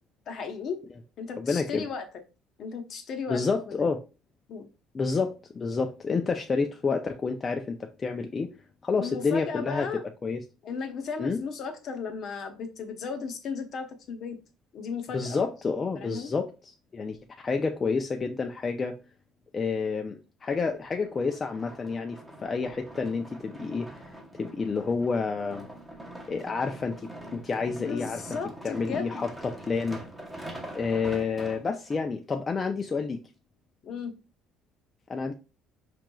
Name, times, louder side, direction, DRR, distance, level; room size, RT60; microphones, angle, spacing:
voice 1, 0.3-0.8 1.2-2.1 2.6-3.9 4.5-4.7 9.0-10.0 10.6-14.4 14.7-15.4 16.0-16.3 27.8-29.3 33.8-34.1, left 5 dB, 50° left, 0.7 m, -35 dB
voice 2, 1.4-1.9 3.3-4.0 4.9-8.5 8.8-9.9 10.2-10.4 11.2-11.4 15.1-16.5 16.9-17.2 17.4-18.9 19.5-23.9 24.4-25.7 26.3-27.0 27.3-28.2 28.6-30.0 30.7-33.2 35.1-35.3, left 4 dB, 25° left, 0.3 m, -29 dB
sound 1, 21.0-32.0 32.7-32.8, right 1 dB, 5° right, 0.8 m, -44 dB
4.9 x 3.0 x 2.2 m
cardioid pair, 140°, 0 cm